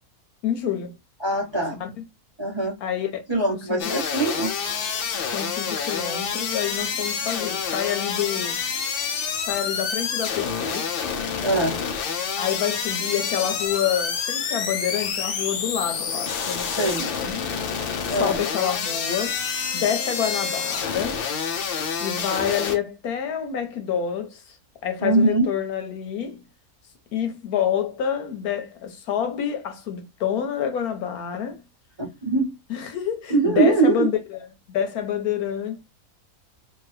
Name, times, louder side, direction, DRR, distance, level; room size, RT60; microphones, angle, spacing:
voice 1, 0.4-1.0 1.8-2.0 2.8-3.2 3.5-3.9 5.3-8.6 9.4-10.9 12.4-17.5 18.1-19.4 19.7-21.2 22.0-24.6 24.8-26.5 27.1-31.6 32.7-35.8, left 9 dB, 80° left, 1.3 m, -28 dB
voice 2, 1.2-1.8 2.4-2.8 3.3-4.5 11.4-11.8 16.7-17.1 18.1-18.4 25.0-25.5 32.0-32.5 33.3-34.1, right 3 dB, 25° right, 0.6 m, -22 dB
sound 1, 3.8-22.8, left 6 dB, 60° left, 0.6 m, -28 dB
2.9 x 2.6 x 3.2 m
omnidirectional pair, 1.6 m